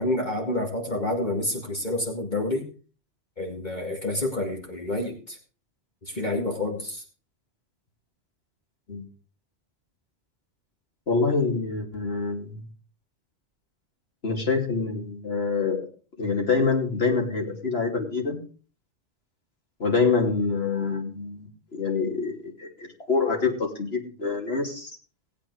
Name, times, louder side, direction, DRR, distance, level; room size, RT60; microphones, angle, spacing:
voice 1, 0.0-2.7 3.4-5.4 6.0-7.0, left 1 dB, 40° left, 1 dB, 2.4 m, -28 dB
voice 2, 11.1-12.6 14.2-15.9 16.2-18.4 19.8-24.9, left 4 dB, 55° left, 1 dB, 3.0 m, -26 dB
18.0 x 8.3 x 4.8 m, 0.39 s
omnidirectional pair, 1.2 m